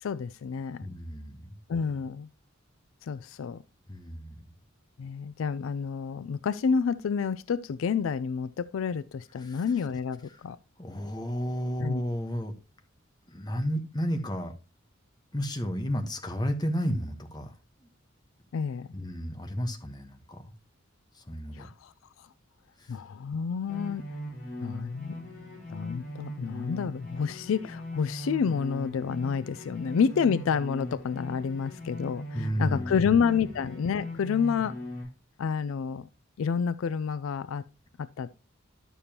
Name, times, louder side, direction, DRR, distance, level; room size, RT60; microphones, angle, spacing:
voice 1, 0.0-0.9 1.7-2.3 3.0-3.6 5.0-10.6 11.8-12.0 18.5-18.9 21.5-21.9 22.2-22.3 22.9-24.0 24.6-25.2 25.7-34.7 35.4-36.1 36.4-37.6 38.0-38.3, left 6 dB, 70° left, 0.4 m, -29 dB
voice 2, 0.8-1.6 3.9-4.5 9.4-9.7 10.3-10.4 10.8-12.5 13.3-14.5 15.3-17.9 18.9-20.5 21.1-21.7 22.8-23.0 32.3-33.5, equal, 20° left, 1.1 m, -33 dB
sound 1, 23.7-35.0, left 1 dB, 45° left, 4.9 m, -39 dB
11.0 x 6.8 x 2.9 m
head